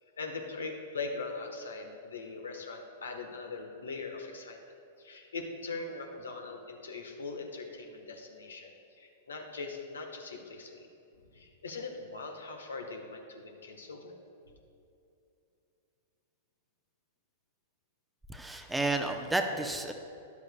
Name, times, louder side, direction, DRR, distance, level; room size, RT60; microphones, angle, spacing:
voice 1, 0.2-4.6 5.0-10.9 11.3-14.1, left 3 dB, 75° left, 4 dB, 1.1 m, -41 dB
voice 2, 18.3-19.9, right 2 dB, 5° right, 5 dB, 0.6 m, -31 dB
13.0 x 11.0 x 2.2 m, 2.7 s
figure-of-eight pair, 100°, 0 cm